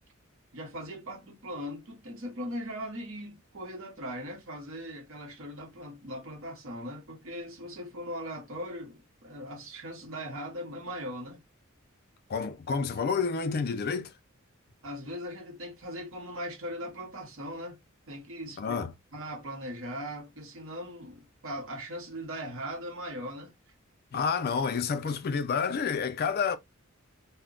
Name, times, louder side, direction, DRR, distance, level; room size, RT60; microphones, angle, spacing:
voice 1, 0.5-11.4 14.8-17.8 18.1-18.7 19.1-23.5, equal, 70° right, 0.9 m, -39 dB
voice 2, 12.3-14.1 18.6-18.9 24.1-26.6, left 5 dB, 45° left, 0.4 m, -29 dB
2.1 x 2.1 x 3.6 m
head